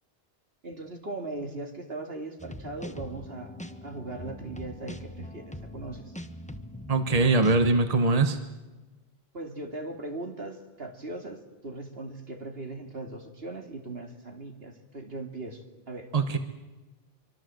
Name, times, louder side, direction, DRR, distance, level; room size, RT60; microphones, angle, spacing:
voice 1, 0.6-3.5 3.8-6.1 9.3-16.1, right 2 dB, 70° right, 4 dB, 2.9 m, -39 dB
sound 1, 2.4-7.7, left 1 dB, 5° left, 1.2 m, -42 dB
voice 2, 6.9-8.4 16.1-16.4, right 3 dB, 40° right, 8 dB, 1.4 m, -22 dB
25.5 x 24.5 x 7.8 m, 1.2 s
omnidirectional pair, 1.0 m